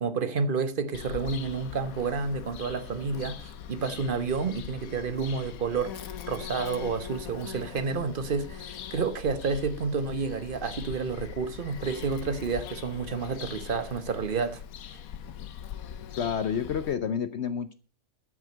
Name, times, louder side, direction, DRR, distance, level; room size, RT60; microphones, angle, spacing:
voice 1, 0.0-14.6, right 5 dB, 40° right, 1.0 m, -30 dB
Bird vocalization bird call bird song, 0.9-16.9, left 9 dB, 75° left, 1.2 m, -41 dB
voice 2, 16.2-17.7, left 7 dB, 60° left, 0.8 m, -29 dB
12.5 x 6.4 x 7.6 m
omnidirectional pair, 1.5 m